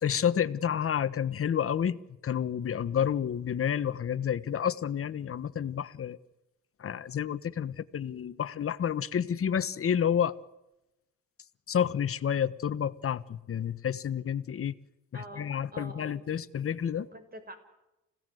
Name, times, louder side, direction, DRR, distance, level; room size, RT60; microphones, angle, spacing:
voice 1, 0.0-6.2 6.8-10.3 11.7-14.7 15.1-17.1, left 8 dB, 45° left, 1.3 m, -30 dB
voice 2, 15.1-16.2 16.9-17.6, right 1 dB, 30° right, 5.8 m, -46 dB
29.5 x 17.0 x 7.9 m
cardioid pair, 90°, 30 cm